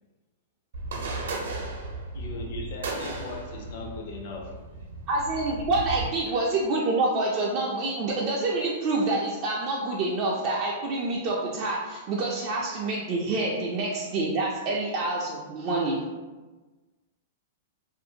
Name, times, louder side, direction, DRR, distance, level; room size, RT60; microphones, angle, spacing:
sound 1, 0.7-6.1, right 2 dB, 85° right, 0.6 m, -35 dB
voice 1, 2.1-4.5 6.3-6.4, left 2 dB, 50° left, 1 dB, 0.5 m, -38 dB
voice 2, 5.1-16.0, right 2 dB, 35° right, -4 dB, 0.3 m, -27 dB
2.5 x 2.4 x 2.7 m, 1.2 s
supercardioid pair, 160°, 0 cm